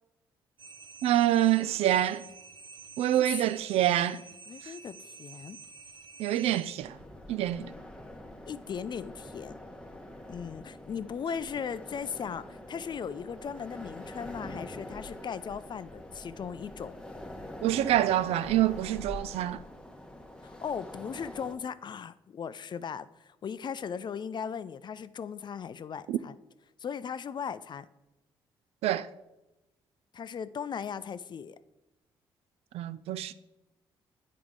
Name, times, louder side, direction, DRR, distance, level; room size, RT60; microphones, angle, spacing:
sound 1, 0.6-6.7, right 4 dB, 45° right, 0.8 m, -49 dB
voice 1, 1.0-2.2 3.0-4.2 6.2-7.0 7.3-7.7 17.6-19.6 26.1-26.2 28.8-29.1 32.7-33.3, right 12 dB, 70° right, 0.3 m, -26 dB
voice 2, 4.5-5.6 8.5-9.6 10.3-17.0 20.4-26.3 26.8-27.9 30.1-31.6, left 7 dB, 45° left, 0.4 m, -38 dB
sound 2, 6.8-21.5, left 1 dB, 5° left, 1.0 m, -45 dB
8.6 x 4.7 x 3.8 m
hypercardioid pair, 50°, 11 cm